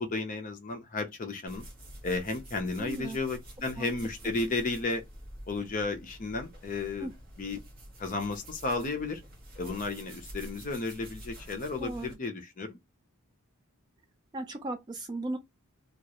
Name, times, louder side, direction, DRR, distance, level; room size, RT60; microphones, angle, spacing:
voice 1, 0.0-1.6 2.0-5.0 5.5-7.1 7.4-7.6 8.0-9.2 9.6-12.8, left 3 dB, 35° left, 0.5 m, -33 dB
sound 1, 1.5-12.1, right 1 dB, 40° right, 0.8 m, -48 dB
voice 2, 2.8-3.2 3.8-3.9 7.0-7.1 11.8-12.1 14.3-15.4, right 2 dB, 20° right, 0.3 m, -36 dB
2.4 x 2.0 x 2.8 m
head